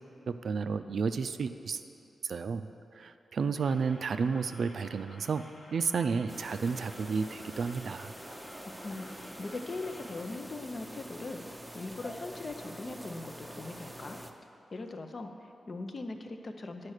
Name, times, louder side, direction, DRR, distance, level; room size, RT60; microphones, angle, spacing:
voice 1, 0.3-1.8 2.2-2.6 3.0-5.4 5.7-8.1, right 5 dB, 70° right, 10 dB, 0.4 m, -31 dB
sound 1, 3.6-10.2, left 1 dB, 80° left, 1.6 m, -53 dB
sound 2, 6.3-14.3, right 1 dB, 5° right, 0.6 m, -46 dB
voice 2, 8.3-14.2 14.7-16.9, left 2 dB, 50° left, 6 dB, 0.6 m, -41 dB
9.7 x 4.3 x 6.5 m, 2.8 s
cardioid pair, 65°, 0 cm